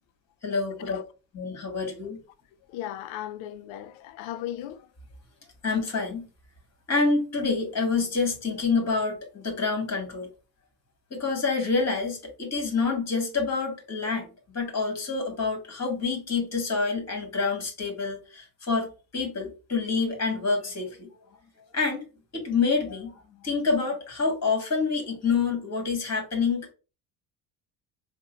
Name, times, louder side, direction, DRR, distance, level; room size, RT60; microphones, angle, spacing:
voice 1, 0.4-1.0 1.3-2.2 5.6-6.3 6.9-10.3 11.1-14.3 14.5-18.9 19.1-21.1 21.7-22.1 22.3-23.1 23.4-26.7, left 4 dB, 30° left, 1.9 m, -27 dB
voice 2, 2.7-4.9, left 12 dB, 65° left, 0.6 m, -36 dB
3.7 x 2.2 x 4.0 m
hypercardioid pair, 60°, 50 cm